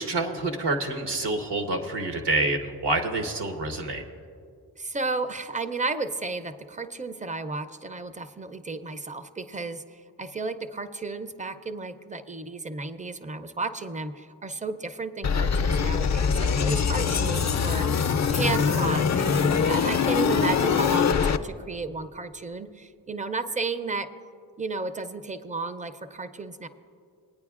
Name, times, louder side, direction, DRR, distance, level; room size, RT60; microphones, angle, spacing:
voice 1, 0.0-4.0, right 2 dB, 70° right, 4 dB, 1.1 m, -27 dB
voice 2, 4.8-9.8 10.2-24.1 24.6-26.7, right 3 dB, 20° right, 11 dB, 0.5 m, -33 dB
sound 1, 15.2-21.4, left 6 dB, 45° left, 0.5 m, -23 dB
20.5 x 9.2 x 2.4 m, 2.3 s
cardioid pair, 45°, 42 cm